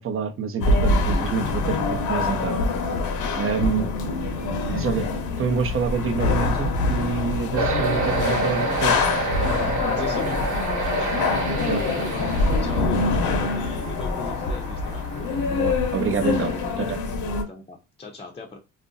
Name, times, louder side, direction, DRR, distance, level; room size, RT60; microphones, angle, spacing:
voice 1, 0.0-2.6 3.4-3.9 4.7-5.1 5.4-9.0 11.7-11.8 15.5-17.0, right 5 dB, 45° right, 7 dB, 0.6 m, -27 dB
sound 1, 0.6-17.4, left 3 dB, 80° left, 0.8 m, -25 dB
voice 2, 3.6-4.2 10.0-10.5 10.9-15.0 17.5-18.6, left 2 dB, 20° left, 0 dB, 0.6 m, -38 dB
sound 2, 7.6-16.8, right 3 dB, 75° right, 1.1 m, -30 dB
2.5 x 2.0 x 3.7 m, 0.27 s
cardioid pair, 90°, 30 cm